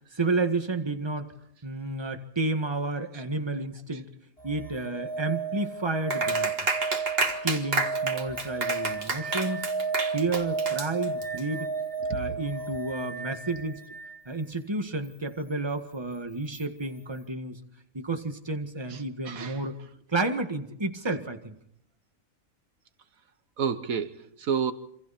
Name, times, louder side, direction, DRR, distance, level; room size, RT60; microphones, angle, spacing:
voice 1, 0.2-1.3 1.6-4.1 4.4-6.5 7.2-9.7 10.1-11.7 12.1-13.8 14.3-17.6 17.9-19.8 20.1-21.6, right 3 dB, 20° right, 1.8 m, -31 dB
sound 1, 4.4-14.2 16.5-16.6, right 4 dB, 25° left, 1.9 m, -33 dB
Clapping, 6.1-11.4, right 3 dB, 45° right, 2.2 m, -30 dB
voice 2, 18.9-19.6 23.6-24.7, right 7 dB, 75° right, 1.5 m, -30 dB
27.0 x 26.5 x 4.3 m
omnidirectional pair, 1.5 m